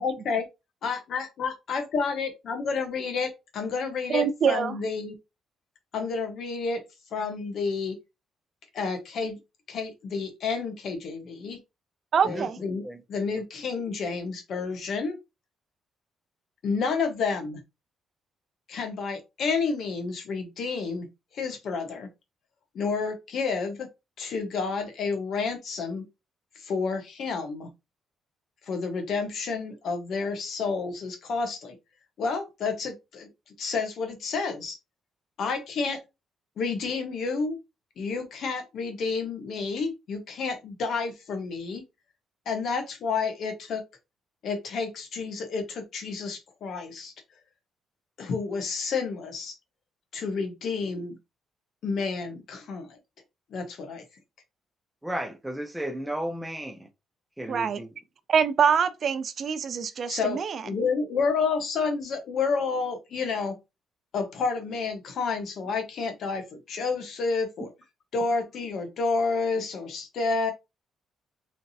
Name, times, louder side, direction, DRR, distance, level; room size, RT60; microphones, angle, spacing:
voice 1, 0.0-0.4 0.8-5.1 5.9-6.8 7.1-8.0 8.7-9.4 9.7-11.6 12.2-15.2 16.6-17.6 18.7-21.1 21.3-22.1 22.7-23.9 24.2-26.0 26.5-27.7 28.7-31.7 32.2-33.3 33.6-34.8 35.4-36.0 36.6-37.6 38.0-41.8 42.5-43.8 44.4-47.1 48.2-49.6 50.1-51.2 51.8-53.0 53.5-54.0 60.1-63.6 64.1-67.7 68.1-70.5, left 4 dB, 65° left, 1.1 m, -30 dB
voice 2, 4.1-4.7 12.1-12.6 57.5-57.8 58.3-60.6, right 7 dB, 55° right, 0.5 m, -24 dB
voice 3, 55.0-56.9 57.4-57.9, right 1 dB, 5° right, 0.8 m, -33 dB
3.8 x 3.4 x 2.7 m
cardioid pair, 90°, 0 cm